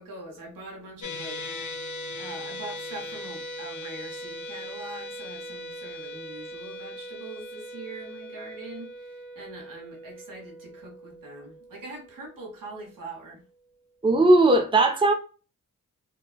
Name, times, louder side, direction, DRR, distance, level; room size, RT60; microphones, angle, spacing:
voice 1, 0.0-1.4 2.2-13.4, right 2 dB, 80° right, 1.4 m, -42 dB
sound 1, 1.0-13.4, left 1 dB, 60° left, 0.7 m, -40 dB
voice 2, 14.0-15.1, right 2 dB, 15° right, 0.7 m, -18 dB
3.5 x 2.4 x 2.2 m
cardioid pair, 50°, 33 cm